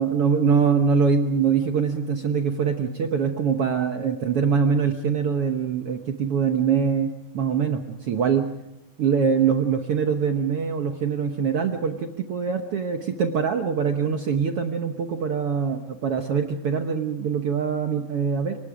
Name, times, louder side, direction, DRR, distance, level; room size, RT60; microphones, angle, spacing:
voice 1, 0.0-8.5 9.0-18.6, right 6 dB, 65° right, 5 dB, 1.4 m, -23 dB
29.5 x 24.5 x 5.0 m, 0.90 s
omnidirectional pair, 4.2 m